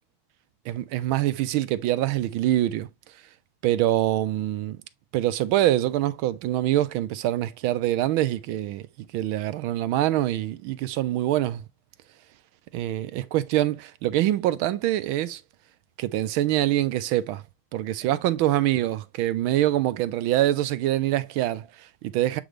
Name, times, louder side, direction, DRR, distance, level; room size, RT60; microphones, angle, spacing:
voice 1, 0.6-2.9 3.6-4.8 5.1-8.9 9.1-11.6 12.7-15.4 16.0-17.4 17.7-22.4, right 14 dB, 80° right, 1.4 m, -24 dB
8.0 x 3.7 x 3.2 m
omnidirectional pair, 2.3 m